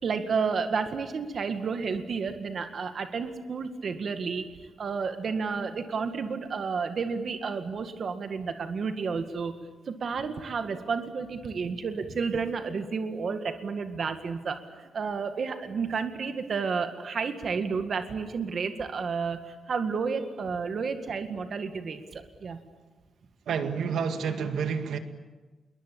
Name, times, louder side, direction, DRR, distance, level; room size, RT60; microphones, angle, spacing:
voice 1, 0.0-9.5 9.9-22.6, right 5 dB, 45° right, 8 dB, 1.9 m, -31 dB
voice 2, 23.5-25.0, right 6 dB, 80° right, 8 dB, 2.0 m, -29 dB
28.0 x 22.5 x 8.7 m, 1.3 s
wide cardioid pair, 175°, 0 cm